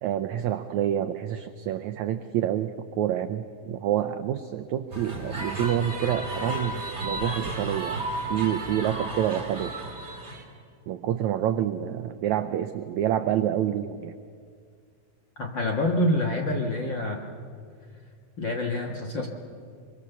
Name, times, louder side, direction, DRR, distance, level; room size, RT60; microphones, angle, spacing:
voice 1, 0.0-9.7 10.9-14.1, right 11 dB, 85° right, 9 dB, 1.6 m, -28 dB
sound 1, 4.9-10.4, right 1 dB, 20° right, 3.2 m, -33 dB
voice 2, 15.4-17.3 18.4-19.3, left 1 dB, 45° left, 1 dB, 1.6 m, -26 dB
24.0 x 24.0 x 7.0 m, 2.1 s
omnidirectional pair, 4.2 m